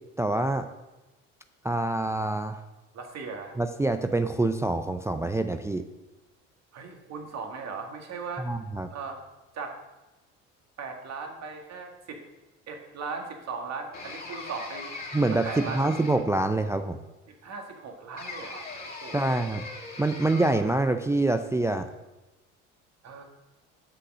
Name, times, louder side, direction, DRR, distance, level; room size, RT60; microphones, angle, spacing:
voice 1, 0.2-0.7 1.6-2.6 3.6-5.9 8.4-8.9 15.1-17.0 19.1-19.6 20.0-21.9, right 2 dB, 10° right, 7 dB, 0.4 m, -26 dB
voice 2, 2.9-3.6 6.7-8.5 8.9-9.2 9.5-9.8 10.8-12.2 12.7-14.9 15.3-16.0 17.4-19.5 23.0-23.2, right 4 dB, 50° right, 3 dB, 2.0 m, -38 dB
sound 1, 13.9-16.5 18.2-20.8, left 3 dB, 25° left, 2.5 m, -40 dB
7.9 x 6.0 x 6.3 m, 1.1 s
hypercardioid pair, 70°, 35 cm